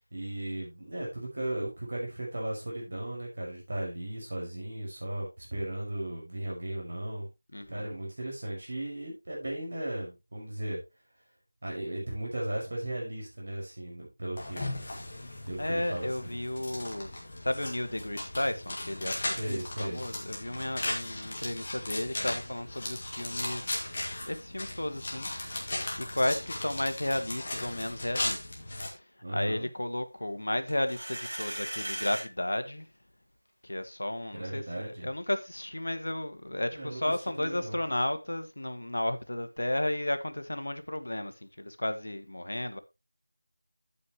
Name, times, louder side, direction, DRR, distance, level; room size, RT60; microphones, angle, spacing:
voice 1, 0.1-7.3 7.7-10.8 11.6-14.8 15.5-16.4 19.3-20.0 29.2-29.7 34.3-35.1 36.7-37.0 37.4-37.8, right 1 dB, 45° right, 5.4 m, -36 dB
voice 2, 7.5-7.9 15.6-17.1 17.4-23.7 24.3-28.4 28.8-29.0 29.3-32.9 33.6-42.8, left 1 dB, 90° left, 1.5 m, -33 dB
sound 1, 14.4-28.9, left 1 dB, 25° left, 2.1 m, -37 dB
sound 2, 30.7-32.3, right 1 dB, 60° right, 6.7 m, -37 dB
9.6 x 8.5 x 3.1 m
figure-of-eight pair, 180°, 0 cm